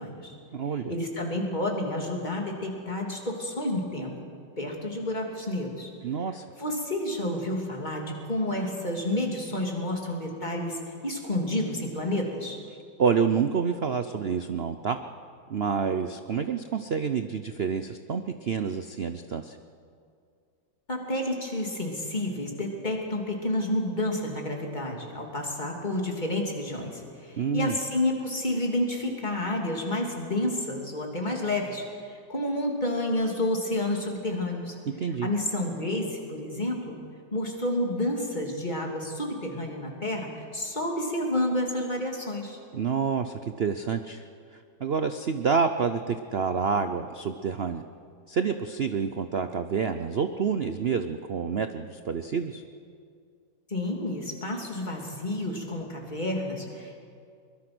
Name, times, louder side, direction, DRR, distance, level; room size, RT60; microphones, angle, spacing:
voice 1, 0.0-0.3 0.9-4.1 4.6-5.9 6.6-12.6 20.9-34.7 35.2-37.0 37.3-42.6 53.7-56.9, left 1 dB, 25° left, 0 dB, 3.1 m, -30 dB
voice 2, 0.5-0.9 6.0-6.4 13.0-15.0 15.5-19.6 27.4-27.8 35.0-35.3 42.7-44.2 44.5-47.8 48.3-52.6, right 6 dB, 80° right, 9 dB, 0.5 m, -28 dB
23.0 x 21.5 x 6.2 m, 2.3 s
omnidirectional pair, 2.1 m